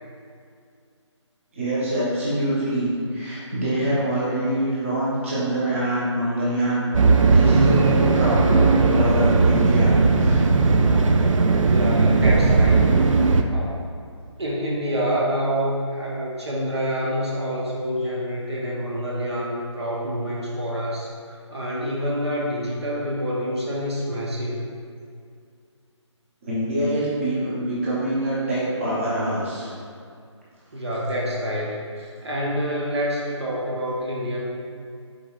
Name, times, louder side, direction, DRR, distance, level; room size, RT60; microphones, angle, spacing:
voice 1, 1.5-6.9 7.2-10.4 26.4-29.8, right 1 dB, 25° right, -9 dB, 0.9 m, -25 dB
sound 1, 6.9-13.4, right 4 dB, 85° right, 0.4 m, -17 dB
voice 2, 11.7-12.9 13.5-13.8 14.4-21.1 21.5-24.7 30.7-34.4, equal, 60° right, -4 dB, 0.9 m, -27 dB
5.2 x 4.3 x 2.4 m, 2.3 s
figure-of-eight pair, 170°, 16 cm